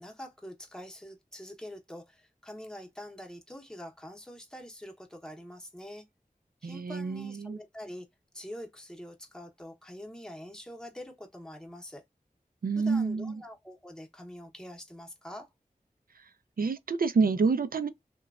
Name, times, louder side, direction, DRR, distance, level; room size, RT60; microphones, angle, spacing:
voice 1, 0.0-6.0 6.6-8.1 8.3-12.0 12.8-15.5, equal, 5° left, 0.8 m, -45 dB
voice 2, 6.6-7.6 12.6-13.4 16.6-17.9, right 4 dB, 75° right, 0.4 m, -28 dB
3.0 x 2.2 x 2.3 m
wide cardioid pair, 50°, 15 cm